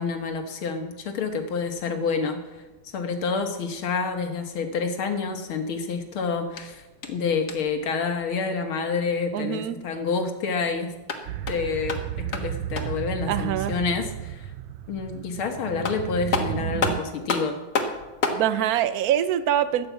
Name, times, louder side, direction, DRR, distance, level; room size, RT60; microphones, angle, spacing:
voice 1, 0.0-2.4 2.9-6.8 7.1-10.9 11.5-14.5 14.9-17.6, left 5 dB, 85° left, 6 dB, 2.3 m, -28 dB
sound 1, 6.5-7.8 10.9-13.1 15.4-15.5 15.8-18.5, left 4 dB, 55° left, 1.9 m, -30 dB
voice 2, 9.3-9.8 13.3-13.7 18.3-19.9, right 11 dB, 60° right, 12 dB, 1.0 m, -24 dB
sound 2, 11.3-17.0, right 11 dB, 90° right, 1.5 m, -33 dB
14.5 x 9.8 x 7.1 m, 1.1 s
omnidirectional pair, 2.2 m